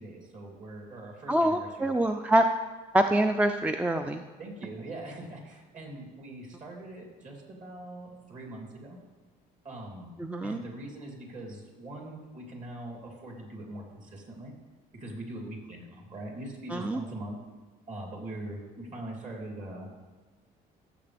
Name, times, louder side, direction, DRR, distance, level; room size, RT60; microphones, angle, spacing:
voice 1, 0.0-2.0 4.4-9.0 9.6-10.1 10.4-14.5 14.9-17.4 17.9-19.9, right 1 dB, 45° right, -1 dB, 3.1 m, -42 dB
voice 2, 1.3-2.4 2.9-4.2 10.2-10.6 16.7-17.0, right 1 dB, 10° right, 6 dB, 0.4 m, -25 dB
15.5 x 7.3 x 3.4 m, 1.3 s
cardioid pair, 110°, 17 cm